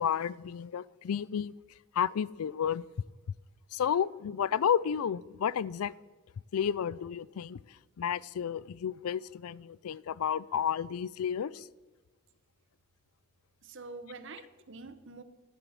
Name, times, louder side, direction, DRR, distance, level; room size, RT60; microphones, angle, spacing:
voice 1, 0.0-1.5 1.9-2.8 3.7-5.9 6.5-7.6 8.0-11.7, left 8 dB, 80° left, 22 dB, 0.4 m, -31 dB
voice 2, 13.6-15.2, right 3 dB, 55° right, 12 dB, 0.9 m, -46 dB
11.5 x 10.0 x 7.2 m, 1.3 s
head